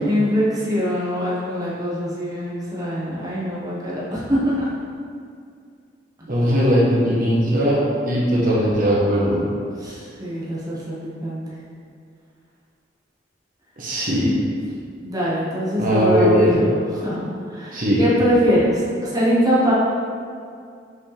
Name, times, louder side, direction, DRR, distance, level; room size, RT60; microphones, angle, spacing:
voice 1, 0.1-4.7 9.8-11.4 15.0-17.2 17.5-19.7, equal, 20° right, -8 dB, 1.3 m, -22 dB
voice 2, 6.3-7.8 8.0-9.4 13.8-14.4 15.8-16.6 17.7-18.0, equal, 50° right, -6 dB, 1.2 m, -19 dB
6.3 x 5.2 x 3.4 m, 2.3 s
head